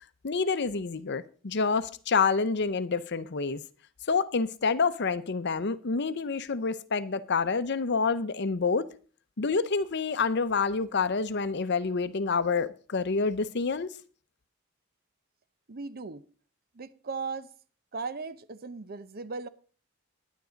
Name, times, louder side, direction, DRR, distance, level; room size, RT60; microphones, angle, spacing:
voice 1, 0.2-3.6 4.1-8.8 9.4-13.9, left 4 dB, 55° left, 0.7 m, -28 dB
voice 2, 15.7-16.2 16.8-17.5 17.9-19.5, right 4 dB, 45° right, 0.7 m, -37 dB
10.0 x 9.7 x 5.1 m
head